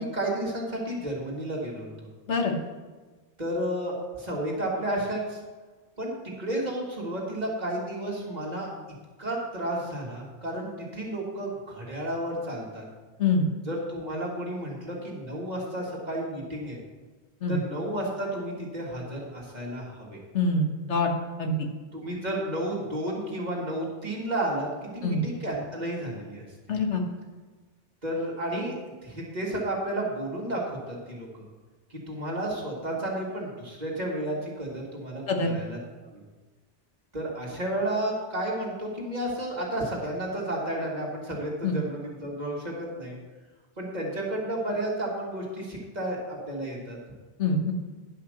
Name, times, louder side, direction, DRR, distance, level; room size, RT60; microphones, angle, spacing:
voice 1, 0.0-2.1 3.4-5.4 6.0-8.7 9.2-12.8 13.7-16.8 17.5-20.2 21.9-26.5 28.0-28.7 29.0-31.5 31.9-36.2 37.1-43.2 43.8-47.0, right 1 dB, 40° right, -3 dB, 2.2 m, -32 dB
voice 2, 20.3-21.1 21.4-21.5 25.0-25.2 26.7-27.0 35.3-35.5 41.6-41.8 47.4-47.7, left 3 dB, 80° left, 2 dB, 1.5 m, -25 dB
10.5 x 5.7 x 6.5 m, 1.3 s
omnidirectional pair, 1.2 m